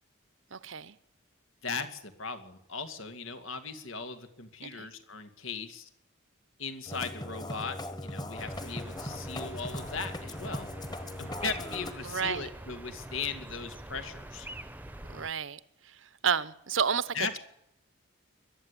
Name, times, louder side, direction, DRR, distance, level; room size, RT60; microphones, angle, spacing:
voice 1, 0.5-1.0 4.6-4.9 12.0-12.5 15.1-15.6 15.8-17.4, right 6 dB, 75° right, 0.9 m, -31 dB
voice 2, 1.6-5.9 6.6-10.7 11.2-14.5 17.1-17.4, left 5 dB, 80° left, 2.4 m, -38 dB
Musical instrument, 6.9-11.9, left 1 dB, 20° left, 1.5 m, -39 dB
sound 1, 8.4-15.3, right 1 dB, 10° right, 0.9 m, -45 dB
22.0 x 12.5 x 10.0 m
head